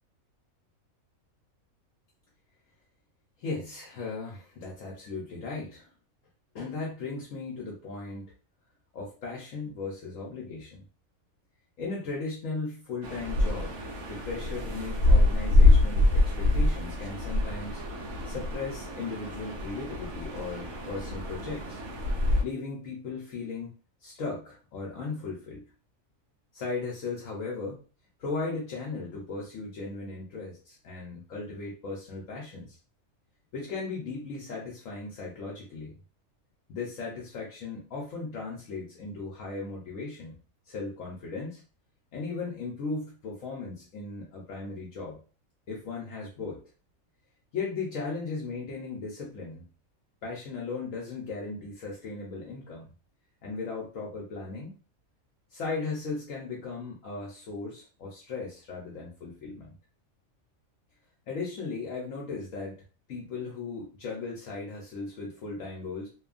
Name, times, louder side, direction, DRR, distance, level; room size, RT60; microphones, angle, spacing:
voice 1, 3.4-5.9 6.5-8.3 8.9-10.8 11.8-13.8 14.1-17.8 18.2-21.8 22.4-23.7 24.0-25.7 26.5-27.8 28.2-32.8 33.5-35.9 36.7-40.3 40.7-41.6 42.1-45.2 45.7-46.6 47.5-49.7 50.2-52.9 53.4-54.7 55.5-59.8 61.3-62.8 63.1-66.1, left 4 dB, 70° left, -3 dB, 1.0 m, -37 dB
sound 1, 13.0-22.4, left 2 dB, 80° right, 1.1 m, -25 dB
2.9 x 2.2 x 2.4 m, 0.36 s
omnidirectional pair, 1.5 m